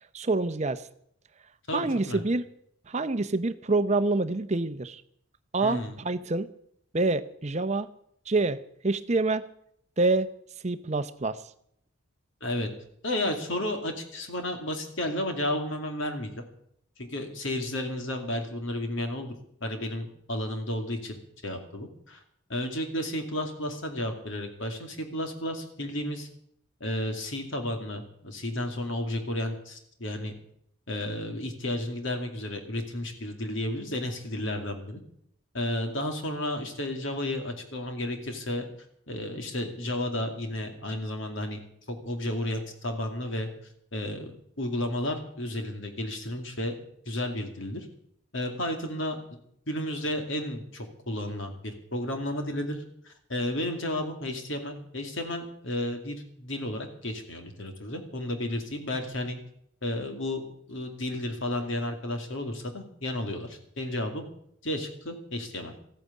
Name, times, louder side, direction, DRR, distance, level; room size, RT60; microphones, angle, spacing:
voice 1, 0.1-0.8 1.7-2.4 2.9-5.0 5.5-6.5 6.9-7.9 8.3-9.5 10.0-10.3 10.6-11.4, right 3 dB, 30° right, 11 dB, 0.7 m, -26 dB
voice 2, 1.7-2.2 5.6-5.9 12.4-12.7 13.0-16.4 17.0-19.3 19.6-22.2 22.5-26.3 26.8-30.3 30.9-35.0 35.5-38.6 39.1-41.6 41.9-43.5 43.9-44.3 44.6-46.7 47.1-47.9 48.3-49.4 49.7-59.4 59.8-64.2 64.6-65.7, left 1 dB, 65° left, 4 dB, 2.4 m, -32 dB
14.5 x 9.2 x 8.4 m, 0.70 s
head